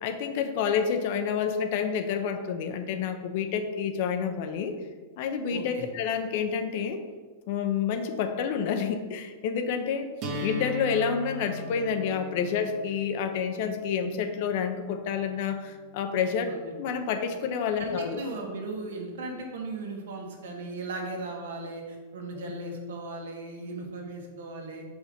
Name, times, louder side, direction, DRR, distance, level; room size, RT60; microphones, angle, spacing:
voice 1, 0.0-4.7 5.2-7.0 7.5-10.1 10.4-16.5 16.7-18.2, left 7 dB, 50° left, 8 dB, 0.7 m, -29 dB
voice 2, 5.5-5.9 16.5-16.7 17.8-24.8, right 2 dB, 90° right, 1 dB, 1.5 m, -37 dB
sound 1, 10.2-16.2, left 1 dB, 30° right, 1.1 m, -40 dB
5.2 x 5.2 x 5.1 m, 1.4 s
supercardioid pair, 160°, 0 cm